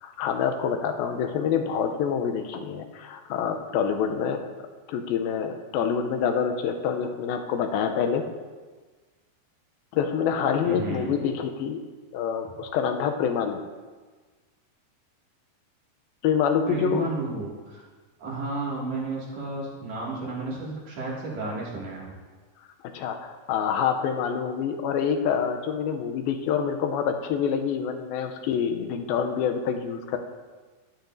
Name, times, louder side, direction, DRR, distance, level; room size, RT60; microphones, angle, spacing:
voice 1, 0.0-4.5 4.9-8.3 9.9-11.8 12.1-13.6 16.2-17.1 22.9-30.2, left 7 dB, 85° left, 5 dB, 2.5 m, -26 dB
voice 2, 10.6-11.2 16.7-17.8 18.2-22.1, right 2 dB, 50° right, -5 dB, 3.2 m, -32 dB
11.5 x 10.5 x 2.6 m, 1.4 s
omnidirectional pair, 4.2 m